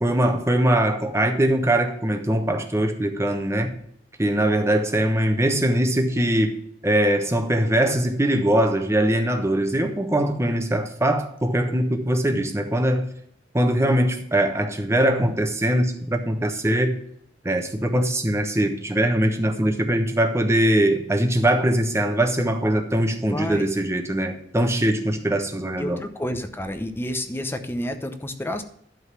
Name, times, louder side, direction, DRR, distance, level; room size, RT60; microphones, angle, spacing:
voice 1, 0.0-3.7 4.2-6.6 6.8-13.1 13.5-17.0 17.4-26.0, right 1 dB, 15° right, 1.1 m, -22 dB
voice 2, 23.3-23.7 25.8-28.6, left 1 dB, 15° left, 0.8 m, -29 dB
11.5 x 3.9 x 7.4 m
head